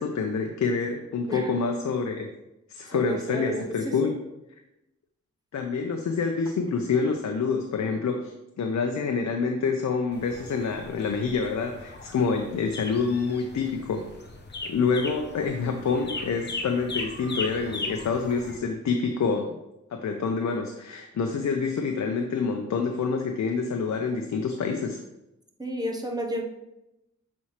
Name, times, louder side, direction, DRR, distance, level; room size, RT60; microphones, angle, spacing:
voice 1, 0.0-2.3 2.7-4.2 5.5-14.1 14.6-19.6 19.9-25.0, left 5 dB, 65° left, 4 dB, 0.6 m, -27 dB
voice 2, 2.9-4.1 25.6-26.4, right 1 dB, 15° right, 1 dB, 0.9 m, -32 dB
sound 1, 10.1-18.6, left 3 dB, 35° left, 0.9 m, -38 dB
7.1 x 4.2 x 3.2 m, 0.92 s
cardioid pair, 75°, 30 cm